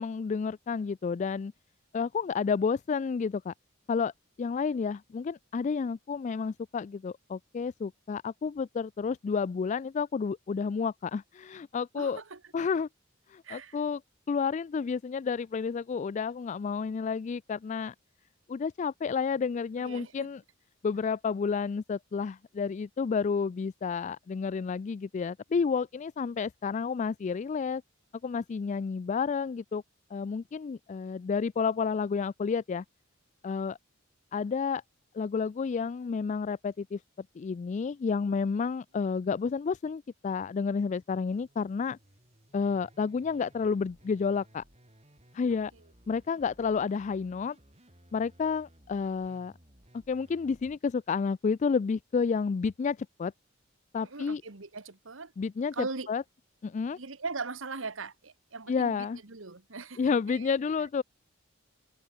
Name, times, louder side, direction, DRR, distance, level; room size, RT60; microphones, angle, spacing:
voice 1, 0.0-1.5 1.9-3.5 3.9-4.1 4.4-12.2 12.5-12.9 13.3-14.0 14.3-17.9 18.5-20.4 20.8-27.8 28.2-29.8 30.1-32.8 33.4-33.8 34.3-34.8 35.1-37.0 37.4-42.0 42.5-44.6 45.3-45.7 46.1-47.6 48.1-49.5 50.1-53.3 53.9-54.4 55.4-56.2 56.6-57.0 58.7-59.2 60.0-61.0, left 5 dB, 35° left, 0.3 m, -30 dB
voice 2, 11.9-12.4 13.4-13.8 19.8-20.3 54.0-55.3 55.7-56.1 56.9-60.5, right 4 dB, 75° right, 1.6 m, -40 dB
sound 1, 41.3-50.8, equal, 30° right, 5.3 m, -60 dB
head